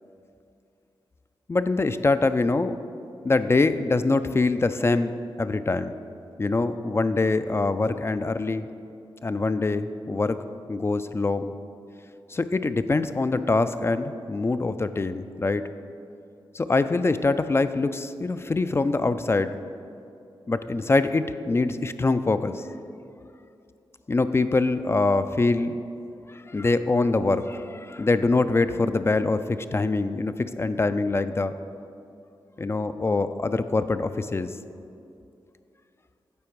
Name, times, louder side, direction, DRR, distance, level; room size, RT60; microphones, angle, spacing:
voice 1, 1.5-2.8 3.2-5.1 5.4-5.9 6.4-8.7 9.2-10.4 10.7-11.5 12.3-15.6 16.5-19.6 20.5-22.6 24.1-25.8 26.3-31.6 32.6-34.5, left 3 dB, 30° left, 11 dB, 0.3 m, -24 dB
8.5 x 4.4 x 4.6 m, 2.6 s
cardioid pair, 50°, 9 cm